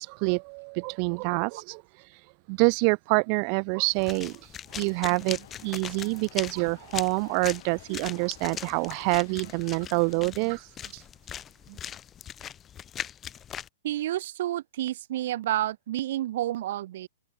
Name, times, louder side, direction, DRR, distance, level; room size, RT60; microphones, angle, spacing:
voice 1, 0.0-11.0 11.7-11.8, right 40 dB or more, 30° right, 0.4 m, -27 dB
sound 1, 3.9-13.7, left 9 dB, 15° left, 1.2 m, -40 dB
sound 2, 4.7-10.2, left 14 dB, 50° left, 6.5 m, -52 dB
voice 2, 13.8-17.1, right 13 dB, 50° right, 1.8 m, -30 dB
hypercardioid pair, 165°, 0 cm